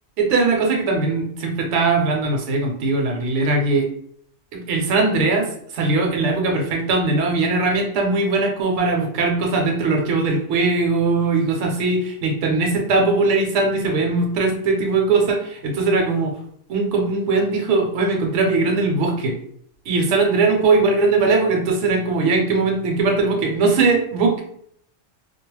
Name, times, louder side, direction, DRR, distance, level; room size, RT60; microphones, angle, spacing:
voice 1, 0.2-3.9 4.5-16.3 16.7-19.4 19.9-24.4, right 3 dB, 70° right, 1 dB, 0.9 m, -20 dB
2.3 x 2.0 x 3.1 m, 0.65 s
omnidirectional pair, 1.4 m